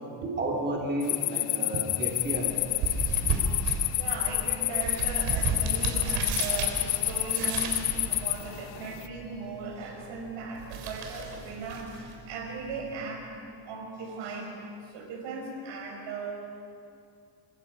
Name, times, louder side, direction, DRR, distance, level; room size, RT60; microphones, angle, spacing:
voice 1, 0.4-2.5 2.8-2.9 7.2-7.3, right 1 dB, 20° right, -2 dB, 3.2 m, -32 dB
sound 1, 1.0-9.1, left 19 dB, 80° left, 0.9 m, -29 dB
sound 2, 2.1-13.1, right 5 dB, 90° right, 4.2 m, -35 dB
voice 2, 3.3-14.6 14.8-16.3, right 4 dB, 70° right, 1 dB, 6.2 m, -38 dB
28.5 x 25.0 x 5.6 m, 2.5 s
cardioid pair, 150°, 45 cm